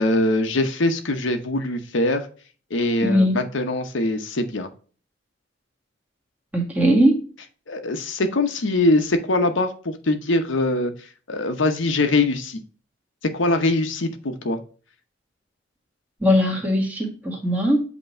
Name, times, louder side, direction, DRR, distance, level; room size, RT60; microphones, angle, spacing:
voice 1, 0.0-2.3 2.7-4.7 7.7-10.9 11.3-12.6 13.3-14.6, left 2 dB, 80° left, 6 dB, 0.9 m, -22 dB
voice 2, 3.0-3.4 6.5-7.2 16.2-17.8, equal, 10° right, 0 dB, 1.5 m, -19 dB
7.9 x 3.0 x 4.3 m, 0.39 s
head